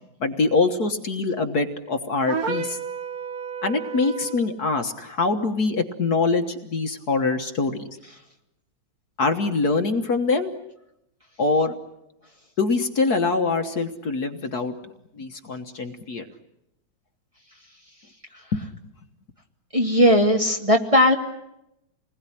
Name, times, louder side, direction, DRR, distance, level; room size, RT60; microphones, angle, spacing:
voice 1, 0.2-2.8 3.6-7.8 9.2-10.5 11.4-11.7 12.6-16.3 18.5-18.6, left 3 dB, 50° left, 6 dB, 1.8 m, -24 dB
sound 1, 2.3-4.5, right 5 dB, 50° right, 1.8 m, -31 dB
voice 2, 19.7-21.1, equal, 15° right, 2 dB, 1.9 m, -18 dB
28.0 x 20.5 x 10.0 m, 0.86 s
omnidirectional pair, 2.2 m